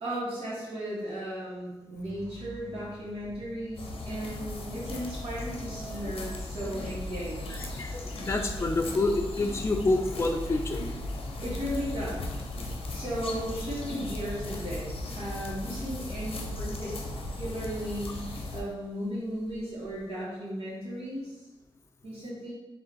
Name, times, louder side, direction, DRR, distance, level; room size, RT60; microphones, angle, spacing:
voice 1, 0.0-7.6 11.4-12.2 12.9-17.0 17.3-18.2 18.5-21.4 22.0-22.5, equal, 90° right, -9 dB, 1.3 m, -35 dB
sound 1, 1.9-20.2, equal, 55° right, 1.4 m, -53 dB
sound 2, 3.8-18.6, left 2 dB, 85° left, 0.7 m, -37 dB
voice 2, 7.5-10.8 12.6-12.7, left 2 dB, 30° left, 3 dB, 0.4 m, -28 dB
3.6 x 2.4 x 4.5 m, 1.1 s
wide cardioid pair, 80°, 10 cm